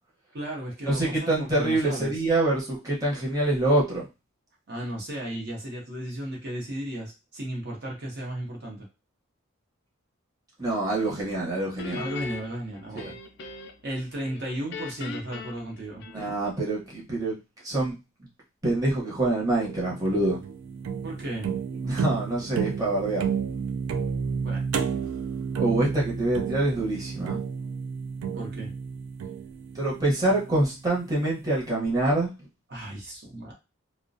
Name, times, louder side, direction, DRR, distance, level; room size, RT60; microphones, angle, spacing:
voice 1, 0.3-2.2 4.7-8.9 12.0-13.2 13.8-16.0 21.0-21.5 24.4-24.6 28.4-28.7 32.7-33.5, right 1 dB, 55° right, -1 dB, 0.7 m, -35 dB
voice 2, 0.8-4.1 10.6-12.0 12.9-13.1 16.1-17.4 17.6-18.0 18.6-20.4 21.8-23.3 25.6-27.4 29.7-32.3, right 2 dB, 15° right, -5 dB, 0.8 m, -25 dB
Guitar, 11.8-13.9 14.2-16.6, left 5 dB, 55° left, 0.3 m, -39 dB
sound 1, 19.6-30.8, right 6 dB, 90° right, 0.3 m, -32 dB
2.3 x 2.1 x 2.5 m, 0.27 s
head